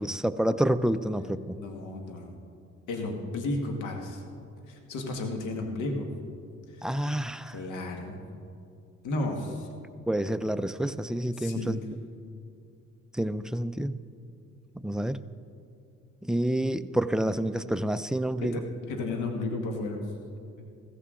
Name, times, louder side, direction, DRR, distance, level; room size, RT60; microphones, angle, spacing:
voice 1, 0.0-1.6 6.8-7.6 10.1-11.8 13.1-13.9 14.8-15.2 16.2-18.6, right 1 dB, ahead, 11 dB, 0.4 m, -28 dB
voice 2, 1.5-2.3 2.9-4.2 4.7-6.1 6.7-7.0 7.5-8.2 9.0-9.7 11.3-11.8 18.4-20.1, left 2 dB, 80° left, 3 dB, 1.6 m, -33 dB
15.0 x 15.0 x 3.8 m, 2.5 s
cardioid pair, 90°, 30 cm